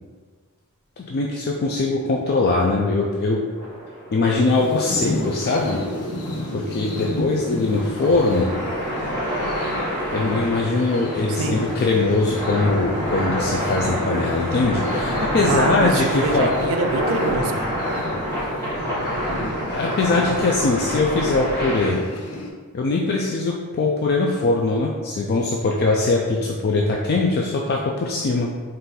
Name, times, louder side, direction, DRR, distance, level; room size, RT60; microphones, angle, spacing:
voice 1, 1.0-3.4 4.1-5.8 6.5-8.5 10.1-16.5 19.7-22.0 22.7-28.5, left 3 dB, 45° left, -1 dB, 0.3 m, -21 dB
sound 1, 3.6-21.9, equal, 10° left, 1.5 m, -27 dB
sound 2, 4.5-22.5, left 1 dB, 90° left, 0.6 m, -33 dB
voice 2, 11.3-11.6 15.5-17.6, right 3 dB, 65° right, 4 dB, 0.4 m, -25 dB
4.1 x 2.6 x 3.8 m, 1.5 s
head